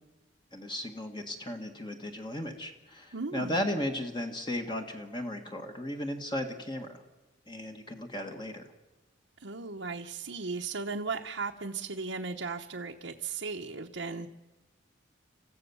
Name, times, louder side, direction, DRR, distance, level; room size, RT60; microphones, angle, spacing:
voice 1, 0.5-7.0 7.5-8.6, left 1 dB, 25° left, 4 dB, 1.6 m, -35 dB
voice 2, 3.1-3.6 9.4-14.3, right 4 dB, 70° right, 1 dB, 1.0 m, -36 dB
29.0 x 15.0 x 7.1 m, 1.2 s
head